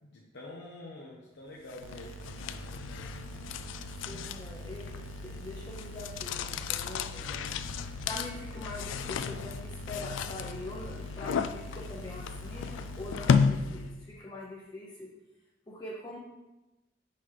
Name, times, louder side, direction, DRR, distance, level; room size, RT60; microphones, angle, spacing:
voice 1, 0.0-2.1 4.1-4.3 7.3-7.5, left 2 dB, 65° left, -4 dB, 0.8 m, -46 dB
sound 1, 1.7-14.1, left 6 dB, 90° left, 0.3 m, -33 dB
sound 2, 1.8-13.3, right 4 dB, 85° right, 0.4 m, -45 dB
voice 2, 4.0-7.4 7.8-15.1 15.7-16.2, left 2 dB, 25° left, -4 dB, 0.7 m, -43 dB
5.7 x 5.7 x 3.2 m, 1.0 s
head